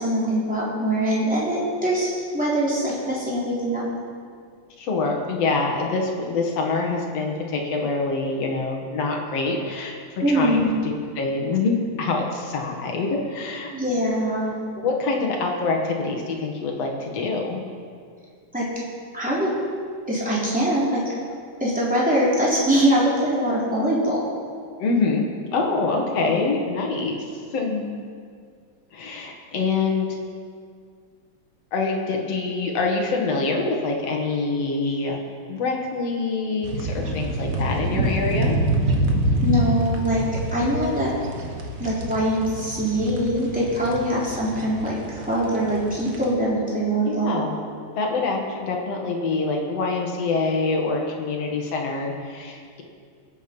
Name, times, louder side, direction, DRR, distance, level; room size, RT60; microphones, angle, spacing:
voice 1, 0.0-3.8 10.2-10.8 13.7-14.5 18.5-18.7 19.1-19.5 20.1-21.1 21.6-24.3 39.4-40.2 40.5-41.1 41.8-47.4, right 1 dB, 5° right, -8 dB, 3.7 m, -23 dB
voice 2, 4.8-11.7 12.0-13.7 14.7-17.6 24.8-25.2 25.5-27.2 27.5-27.9 28.9-30.1 31.7-35.2 35.5-38.6 47.0-47.5 48.0-52.8, left 3 dB, 60° left, 1 dB, 2.5 m, -25 dB
sound 1, 36.6-46.3, right 1 dB, 50° right, 1.0 m, -26 dB
21.0 x 8.5 x 5.4 m, 2.1 s
omnidirectional pair, 3.4 m